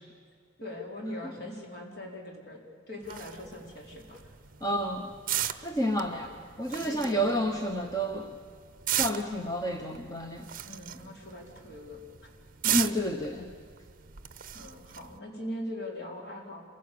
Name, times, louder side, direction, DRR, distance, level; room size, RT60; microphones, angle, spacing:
voice 1, 0.6-2.6 2.9-4.3 5.3-5.7 6.1-6.2 6.7-7.6 8.1-8.3 10.6-12.0 14.5-16.6, left 1 dB, 50° left, -1 dB, 4.5 m, -41 dB
sound 1, 3.0-15.2, right 11 dB, 40° right, 0.7 m, -37 dB
voice 2, 4.6-5.1 5.6-8.3 8.9-10.5 12.6-13.5, equal, 15° left, 2 dB, 1.1 m, -30 dB
27.0 x 16.5 x 8.7 m, 2.1 s
head